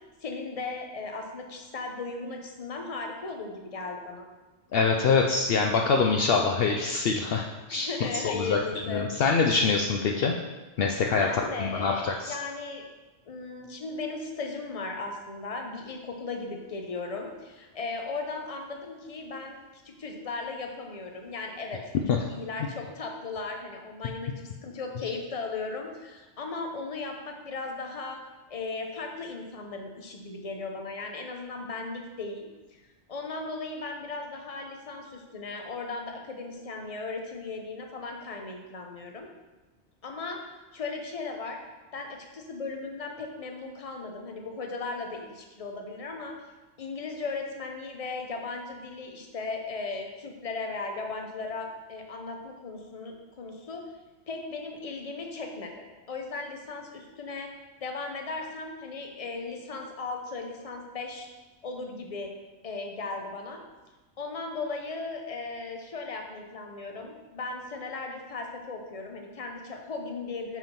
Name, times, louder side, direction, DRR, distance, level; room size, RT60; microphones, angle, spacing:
voice 1, 0.2-4.3 7.8-9.0 11.1-12.9 13.3-19.6 19.8-21.8 22.1-24.3 24.6-28.2 28.5-32.5 32.8-39.3 40.0-40.4 40.7-41.6 41.9-46.3 46.8-53.8 54.3-57.5 57.8-61.3 61.6-62.3 62.6-63.6 64.2-70.6, left 3 dB, 35° left, 2 dB, 0.8 m, -37 dB
voice 2, 4.7-7.4 7.7-7.9 8.2-8.6 8.9-10.3 10.8-11.3 11.6-12.3, left 4 dB, 65° left, 2 dB, 0.7 m, -24 dB
5.7 x 4.9 x 5.3 m, 1.2 s
omnidirectional pair, 1.1 m